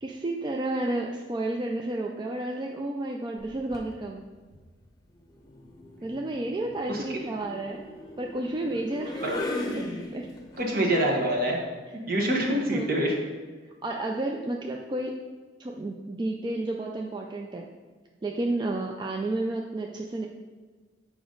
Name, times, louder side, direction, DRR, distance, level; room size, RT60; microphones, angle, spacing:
voice 1, 0.0-4.2 6.0-7.8 8.2-9.4 9.8-9.9 10.1-10.3 12.5-12.9 13.8-15.1 15.6-17.7 18.2-20.3, right 2 dB, 25° right, 1 dB, 0.4 m, -31 dB
sound 1, 3.4-3.9 5.3-10.6, left 1 dB, 20° left, 0.8 m, -37 dB
voice 2, 10.6-11.6 12.1-13.1, right 1 dB, 55° right, -1 dB, 1.3 m, -25 dB
6.8 x 5.1 x 3.9 m, 1.4 s
head